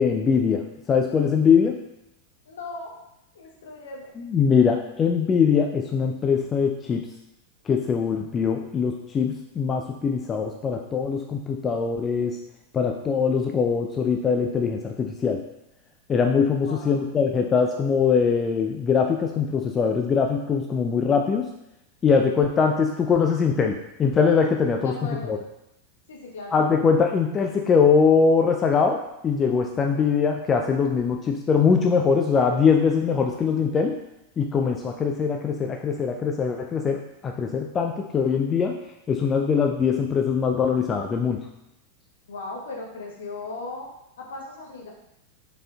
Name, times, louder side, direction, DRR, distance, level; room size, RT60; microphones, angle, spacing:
voice 1, 0.0-1.8 4.2-7.1 7.7-12.4 12.7-15.4 16.1-21.5 22.0-24.9 25.3-25.4 26.5-34.0 34.4-38.8 39.1-41.5, left 6 dB, 25° left, 3 dB, 0.3 m, -22 dB
voice 2, 2.4-2.9 3.3-4.1 16.6-17.1 24.8-25.4 26.1-26.6 42.3-43.9 44.2-44.9, left 3 dB, 60° left, -1 dB, 1.0 m, -37 dB
5.0 x 4.2 x 2.3 m, 0.85 s
figure-of-eight pair, 90°, 0 cm